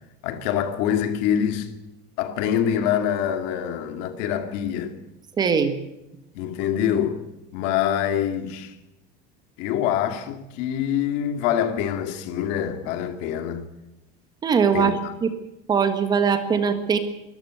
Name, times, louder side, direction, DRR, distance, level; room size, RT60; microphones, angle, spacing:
voice 1, 0.2-1.7 2.2-5.0 6.3-7.2 7.5-8.8 9.6-13.6 14.7-15.1, left 9 dB, 55° left, 2.3 m, -25 dB
voice 2, 5.4-5.8 14.4-15.3 15.7-17.0, right 6 dB, 20° right, 1.5 m, -21 dB
24.0 x 14.0 x 8.1 m
cardioid pair, 180°, 21 cm